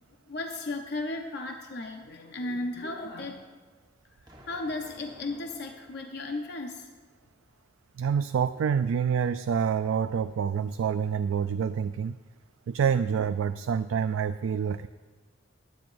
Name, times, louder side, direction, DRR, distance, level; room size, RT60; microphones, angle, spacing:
voice 1, 0.3-3.6 4.4-6.9, left 2 dB, 55° left, 3 dB, 0.7 m, -35 dB
Explosion, 4.3-7.2, right 1 dB, 20° right, 1.2 m, -55 dB
voice 2, 8.0-12.2 12.7-14.9, right 7 dB, 85° right, 11 dB, 0.3 m, -27 dB
23.0 x 9.3 x 2.6 m, 1.4 s
head